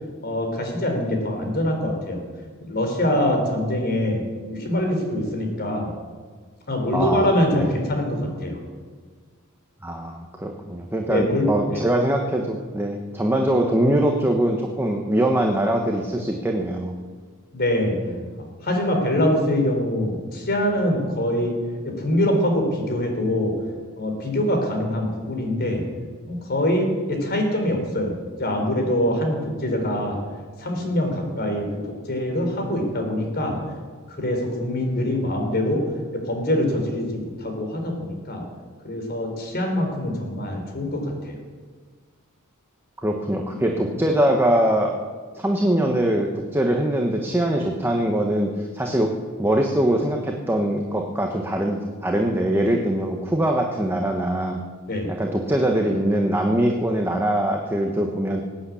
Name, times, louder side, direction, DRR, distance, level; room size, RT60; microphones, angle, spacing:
voice 1, 0.2-2.2 2.6-4.2 4.5-5.9 6.7-8.6 11.1-11.8 17.5-18.0 18.4-21.6 21.8-23.5 24.0-25.8 26.2-30.2 30.6-31.7 32.1-33.6 34.1-35.8 36.1-38.4 38.8-41.4 54.9-55.1, left 1 dB, 50° left, 3 dB, 4.0 m, -24 dB
voice 2, 6.9-7.2 7.5-7.7 9.8-17.0 43.0-44.9 45.3-49.1 49.4-54.6 55.2-58.4, right 1 dB, 10° right, 2 dB, 1.2 m, -22 dB
19.5 x 8.7 x 8.5 m, 1.5 s
head